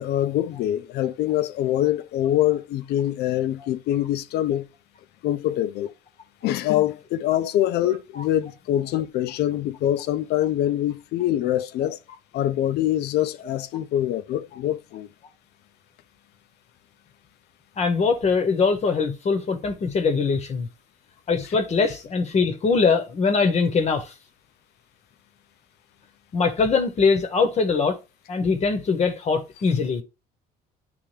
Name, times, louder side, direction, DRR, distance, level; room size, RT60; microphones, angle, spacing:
voice 1, 0.0-4.7 5.2-5.9 6.4-12.0 12.3-15.1, left 12 dB, 75° left, 0.5 m, -24 dB
voice 2, 17.8-20.7 21.3-24.1 26.3-28.0 28.3-30.0, left 4 dB, 40° left, 0.9 m, -22 dB
8.7 x 3.4 x 3.2 m
cardioid pair, 110°, 17 cm